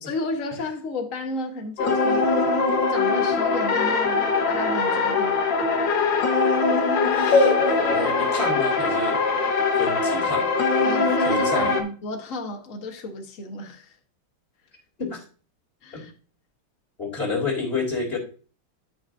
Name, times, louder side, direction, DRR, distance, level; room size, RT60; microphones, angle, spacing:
voice 1, 0.0-2.5 2.9-5.4 10.8-13.9 15.8-16.1, left 2 dB, 45° left, 1.6 m, -33 dB
sound 1, 1.8-11.8, left 4 dB, 70° left, 2.0 m, -21 dB
voice 2, 7.1-9.2 9.8-10.5 11.2-11.8 15.0-15.2 15.9-16.0 17.0-18.2, left 3 dB, 30° left, 3.5 m, -29 dB
12.0 x 6.1 x 2.6 m
omnidirectional pair, 2.1 m